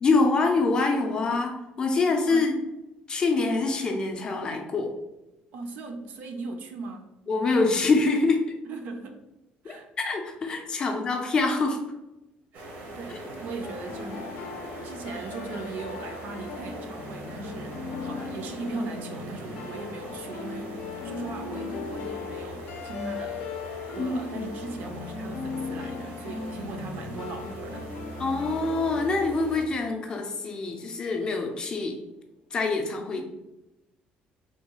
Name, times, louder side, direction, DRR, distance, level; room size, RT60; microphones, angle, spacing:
voice 1, 0.0-2.5 3.1-4.9 7.3-8.4 9.6-11.8 13.1-13.2 24.0-24.4 28.2-32.0 32.5-33.2, left 3 dB, 25° left, 3 dB, 0.4 m, -25 dB
voice 2, 2.3-2.6 5.5-7.1 8.6-9.2 9.6-9.9 10.8-10.9 12.5-14.3 14.8-23.5 23.9-27.9, right 3 dB, 60° right, 5 dB, 0.4 m, -39 dB
sound 1, 12.5-29.7, right 2 dB, 75° right, 0.8 m, -42 dB
sound 2, 13.6-30.5, left 5 dB, 80° left, 0.5 m, -38 dB
3.5 x 2.3 x 2.9 m, 0.97 s
cardioid pair, 175°, 3 cm